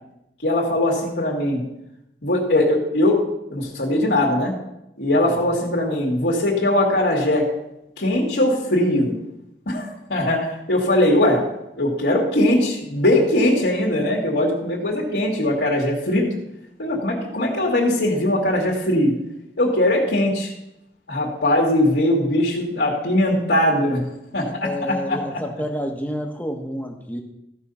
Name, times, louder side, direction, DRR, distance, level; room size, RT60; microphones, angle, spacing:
voice 1, 0.4-1.6 2.2-3.2 3.5-4.5 5.0-7.5 8.0-9.1 9.7-11.4 11.8-16.3 16.8-19.1 19.6-20.5 21.1-24.1 24.3-25.4, left 1 dB, 75° left, -3 dB, 2.2 m, -20 dB
voice 2, 24.6-27.2, equal, 10° left, 3 dB, 1.2 m, -29 dB
14.5 x 5.6 x 5.6 m, 0.86 s
head